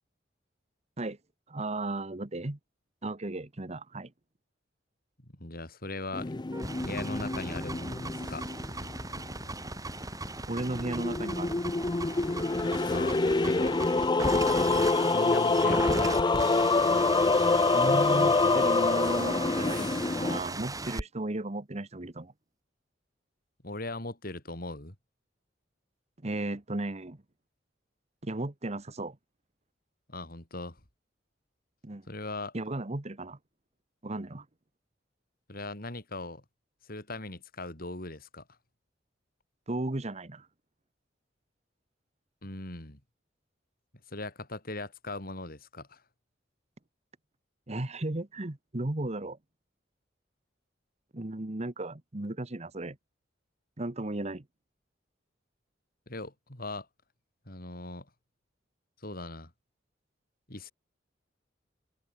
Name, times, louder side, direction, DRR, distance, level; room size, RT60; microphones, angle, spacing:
voice 1, 1.5-2.6 3.0-4.1 10.5-11.6 17.7-19.9 20.2-22.3 26.2-27.2 28.2-29.2 31.8-32.0 32.5-33.4 34.0-34.4 39.7-40.5 47.7-49.4 51.1-53.0 53.8-54.4, right 2 dB, 35° right, 1.3 m, -35 dB
voice 2, 5.2-6.3 6.8-8.4 12.9-13.8 15.1-16.5 23.6-25.0 30.1-30.8 32.1-32.5 35.5-36.4 36.9-38.4 42.4-43.0 44.1-46.0 56.1-56.9 57.5-58.1 59.0-59.5 60.5-60.7, left 2 dB, 50° left, 5.6 m, -39 dB
sound 1, 6.1-9.5 10.6-20.4, left 3 dB, 25° left, 0.5 m, -26 dB
sound 2, 6.5-21.0, right 2 dB, 20° right, 5.2 m, -37 dB
open air
head